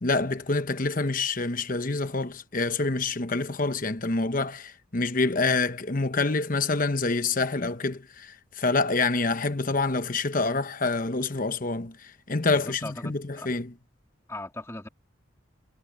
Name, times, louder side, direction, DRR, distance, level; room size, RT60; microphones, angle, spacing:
voice 1, 0.0-13.7, left 3 dB, 40° left, 1.0 m, -27 dB
voice 2, 12.5-13.5 14.3-14.9, left 2 dB, 15° left, 2.3 m, -39 dB
head